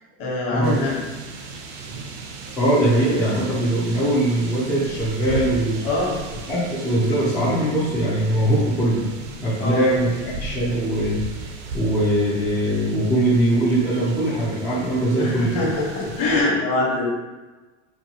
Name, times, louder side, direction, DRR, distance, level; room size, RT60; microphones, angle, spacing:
voice 1, 0.2-0.9 5.8-6.1 9.6-10.0 15.2-17.1, left 2 dB, 40° left, -5 dB, 1.2 m, -23 dB
sound 1, 0.6-16.4, right 3 dB, 60° right, 0.6 m, -36 dB
voice 2, 2.6-5.8 6.5-9.0 9.4-11.2 11.7-15.5, right 1 dB, 10° left, -11 dB, 0.4 m, -21 dB
4.4 x 2.3 x 2.8 m, 1.2 s
supercardioid pair, 165°, 38 cm